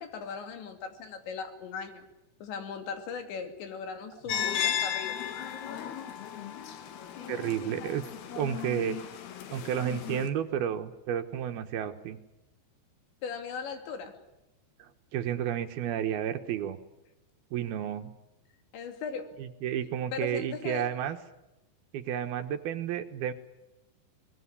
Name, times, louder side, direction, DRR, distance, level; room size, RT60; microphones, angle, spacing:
voice 1, 0.0-2.1 2.4-5.2 13.2-14.2 18.7-19.3 20.1-20.9, left 6 dB, 85° left, 6 dB, 4.9 m, -38 dB
sound 1, 4.3-10.3, left 9 dB, 65° left, 3.6 m, -35 dB
voice 2, 7.3-8.1 8.4-9.0 9.5-12.2 14.8-16.8 17.5-18.1 19.4-21.2 21.9-23.3, right 9 dB, 70° right, 8 dB, 2.8 m, -32 dB
22.5 x 21.5 x 9.8 m, 0.98 s
omnidirectional pair, 5.0 m